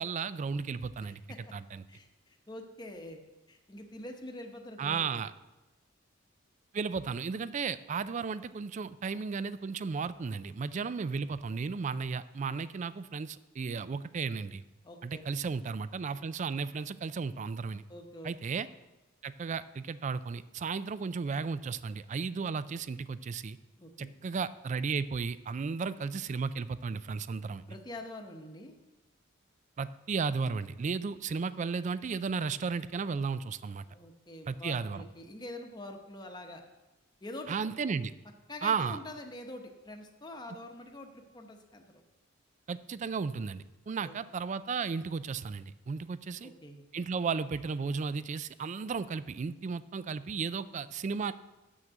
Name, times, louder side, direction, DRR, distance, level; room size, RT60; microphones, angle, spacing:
voice 1, 0.0-1.2 1.5-1.8 4.8-5.3 6.7-14.6 15.0-17.8 18.2-18.7 19.2-23.6 24.0-27.6 29.8-33.9 34.5-35.0 37.5-38.1 38.6-39.0 42.7-46.5 46.9-51.3, right 5 dB, 35° right, 15 dB, 0.3 m, -34 dB
voice 2, 1.0-1.5 1.9-5.2 14.8-15.2 17.9-18.3 23.8-24.1 27.7-28.8 33.9-36.6 37.2-37.7 38.5-41.9 44.0-44.2 46.4-46.8, left 1 dB, 20° left, 3 dB, 0.9 m, -45 dB
7.3 x 6.2 x 7.9 m, 1.1 s
head